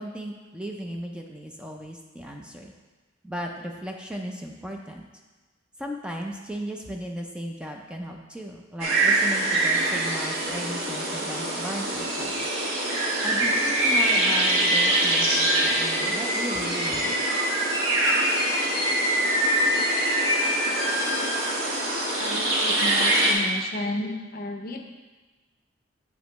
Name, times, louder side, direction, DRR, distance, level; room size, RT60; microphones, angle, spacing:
voice 1, 0.0-2.7 3.2-5.0 5.8-12.5 13.2-17.2, equal, 5° right, 1 dB, 0.4 m, -36 dB
sound 1, 8.8-23.3, right 2 dB, 85° right, 1.1 m, -25 dB
sound 2, 13.6-21.5, equal, 20° left, 1.6 m, -27 dB
voice 2, 22.2-24.8, left 2 dB, 50° left, 4 dB, 0.6 m, -33 dB
8.2 x 5.2 x 3.0 m, 1.3 s
head